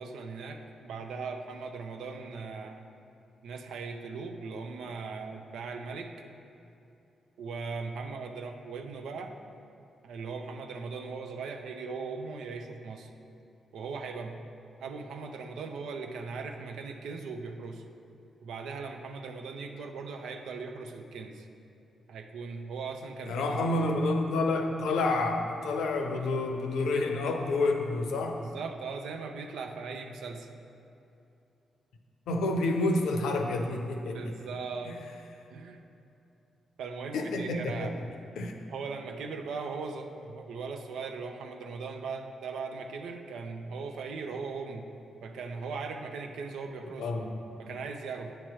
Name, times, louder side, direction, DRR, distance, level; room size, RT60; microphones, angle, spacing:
voice 1, 0.0-2.8 3.4-6.1 7.4-9.3 10.0-13.1 13.7-14.4 14.8-17.8 18.4-21.5 22.1-23.7 28.4-30.5 34.1-35.0 35.5-35.8 36.8-38.0 38.7-44.9 45.2-47.1 47.6-48.4, right 4 dB, 70° right, 4 dB, 0.5 m, -39 dB
voice 2, 23.3-28.4 32.3-34.2 37.1-37.9 38.4-38.6 47.0-47.4, left 2 dB, 75° left, 4 dB, 0.6 m, -29 dB
8.9 x 3.0 x 6.2 m, 2.8 s
hypercardioid pair, 40°, 0 cm